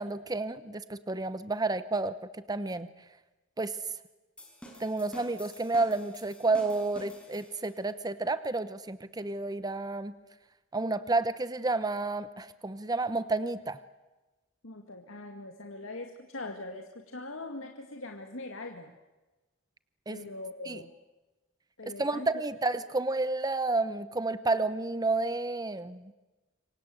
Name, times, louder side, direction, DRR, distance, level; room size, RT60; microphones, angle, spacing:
voice 1, 0.0-2.1 2.5-2.9 3.6-3.8 4.8-10.1 10.7-13.8 20.1-20.3 20.7-20.8 22.0-26.0, right 3 dB, 20° right, 13 dB, 0.9 m, -30 dB
sound 1, 4.4-7.8, equal, 5° left, 6.3 m, -50 dB
voice 2, 14.6-18.9 20.1-20.9 21.8-22.4, left 2 dB, 70° left, 3 dB, 2.2 m, -42 dB
27.5 x 24.0 x 7.9 m, 1.1 s
head